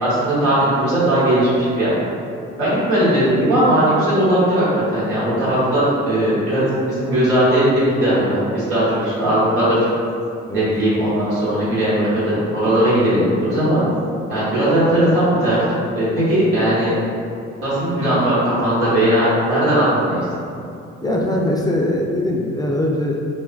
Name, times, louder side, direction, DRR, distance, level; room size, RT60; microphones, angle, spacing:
voice 1, 0.0-1.9 2.6-4.6 4.9-9.9 10.5-13.8 14.3-16.9 17.6-20.2 20.5-20.6, right 1 dB, 90° right, -11 dB, 1.2 m, -18 dB
voice 2, 21.0-23.2, left 1 dB, 10° left, -2 dB, 0.4 m, -21 dB
2.3 x 2.1 x 3.8 m, 2.5 s
hypercardioid pair, 50°, 33 cm